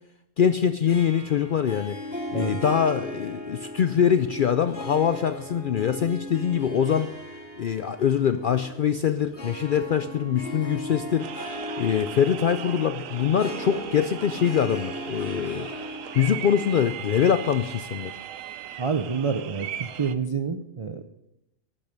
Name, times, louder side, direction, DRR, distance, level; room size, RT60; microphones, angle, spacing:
voice 1, 0.4-2.0 2.3-7.1 7.6-11.3 11.8-15.7 16.1-18.1, left 8 dB, 65° left, 10 dB, 0.5 m, -23 dB
Harp, 0.9-17.6, equal, 45° left, 3.1 m, -38 dB
sound 1, 11.2-20.1, right 10 dB, 80° right, 1.1 m, -38 dB
voice 2, 18.8-21.0, right 5 dB, 50° right, 7 dB, 0.4 m, -28 dB
12.0 x 8.8 x 5.2 m, 0.86 s
omnidirectional pair, 1.3 m